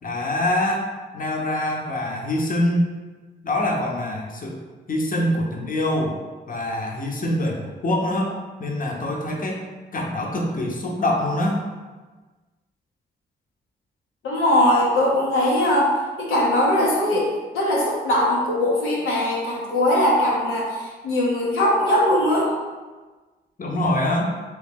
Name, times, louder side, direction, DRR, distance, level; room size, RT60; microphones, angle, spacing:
voice 1, 0.0-0.8 1.1-2.9 3.4-4.6 4.9-6.1 6.5-8.3 8.6-9.6 9.9-11.6 23.6-24.3, left 1 dB, 45° left, -1 dB, 0.8 m, -24 dB
voice 2, 14.2-22.5, left 1 dB, 85° left, -5 dB, 0.8 m, -20 dB
3.1 x 3.1 x 3.6 m, 1.3 s
supercardioid pair, 40°, 20 cm